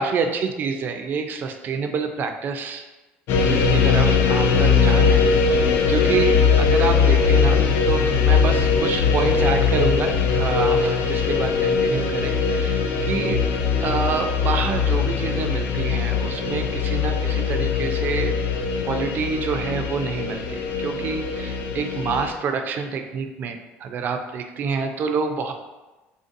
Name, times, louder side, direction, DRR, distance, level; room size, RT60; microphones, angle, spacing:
voice 1, 0.0-2.9 3.4-13.4 13.8-18.4 18.8-25.5, right 5 dB, 45° right, 6 dB, 0.3 m, -27 dB
sound 1, 3.3-22.3, left 5 dB, 55° left, 0.4 m, -20 dB
3.4 x 2.5 x 2.5 m, 1.1 s
cardioid pair, 115°, 5 cm